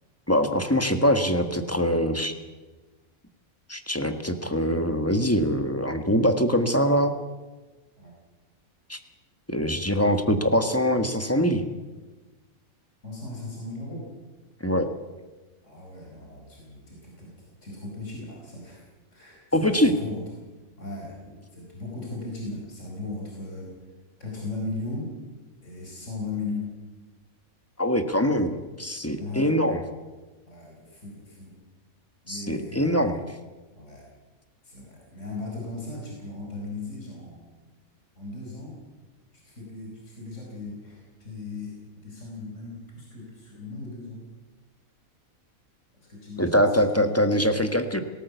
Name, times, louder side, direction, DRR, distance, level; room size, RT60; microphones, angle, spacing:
voice 1, 0.3-2.3 3.7-7.1 8.9-9.0 9.5-11.6 14.6-14.9 19.5-19.9 27.8-28.5 28.8-29.8 32.3-33.2 46.4-48.0, equal, 10° left, 7 dB, 1.3 m, -23 dB
voice 2, 13.0-14.1 15.6-18.8 19.1-20.2 20.8-23.7 24.2-25.1 25.6-26.7 29.1-29.5 30.4-31.6 32.2-32.9 33.7-34.0 34.6-37.5 38.2-38.8 39.3-41.8 42.0-44.3 46.0-47.2, left 3 dB, 60° left, -2 dB, 5.0 m, -37 dB
18.0 x 18.0 x 8.2 m, 1.2 s
omnidirectional pair, 1.5 m